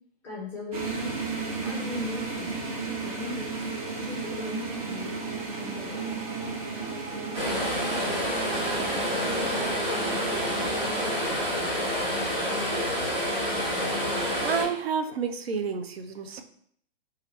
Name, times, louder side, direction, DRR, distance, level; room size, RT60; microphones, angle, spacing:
voice 1, 0.2-1.1 1.6-2.6 3.0-5.2 5.6-6.2 6.7-7.0, left 2 dB, 5° left, -6 dB, 0.4 m, -39 dB
sound 1, 0.7-12.0, right 4 dB, 35° right, 0.6 m, -35 dB
sound 2, 2.8-11.3, right 3 dB, 55° right, 1.0 m, -42 dB
sound 3, 7.3-14.6, equal, 20° right, 1.0 m, -28 dB
voice 2, 14.4-16.4, right 6 dB, 90° right, 7 dB, 0.5 m, -30 dB
2.9 x 2.4 x 3.0 m, 0.66 s
hypercardioid pair, 140°, 30 cm